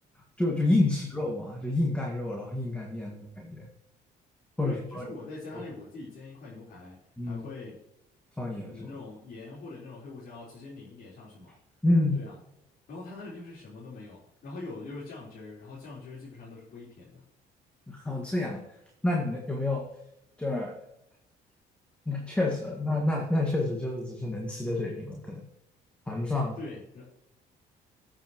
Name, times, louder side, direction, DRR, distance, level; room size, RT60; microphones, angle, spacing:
voice 1, 0.4-3.7 4.6-5.1 5.5-5.6 7.2-7.4 8.4-8.9 11.8-12.2 17.9-18.6 19.0-19.9 20.4-20.8 22.1-25.4 26.1-26.6, left 2 dB, 5° left, 0 dB, 1.8 m, -28 dB
voice 2, 4.6-7.0 7.2-7.8 8.7-11.5 12.1-12.3 12.9-17.2 26.6-27.1, left 3 dB, 60° left, -7 dB, 4.0 m, -43 dB
16.5 x 7.5 x 3.0 m, 0.85 s
cardioid pair, 110°, 17 cm